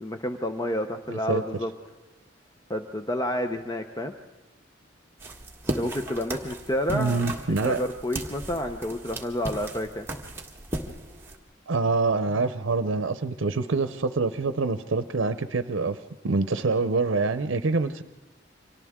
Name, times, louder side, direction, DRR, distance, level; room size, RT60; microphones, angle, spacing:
voice 1, 0.0-1.7 2.7-4.1 5.8-7.2 7.6-10.1, left 1 dB, 20° left, 6 dB, 0.7 m, -29 dB
voice 2, 1.1-1.4 6.9-7.8 11.7-16.0 16.2-18.0, right 3 dB, 90° right, 11 dB, 0.7 m, -25 dB
sound 1, 5.2-11.4, right 1 dB, 10° right, 1.6 m, -36 dB
29.5 x 25.0 x 3.7 m, 1.2 s
head